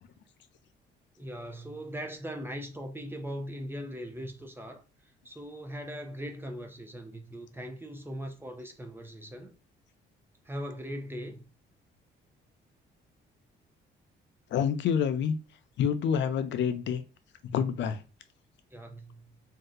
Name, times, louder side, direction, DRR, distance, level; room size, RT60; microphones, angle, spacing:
voice 1, 1.2-9.5 10.4-11.4 18.7-19.3, equal, 10° right, 0.6 m, -40 dB
voice 2, 14.5-15.3 15.8-17.0 17.5-18.0, left 7 dB, 70° left, 0.5 m, -27 dB
2.7 x 2.1 x 3.6 m
cardioid pair, 90°, 20 cm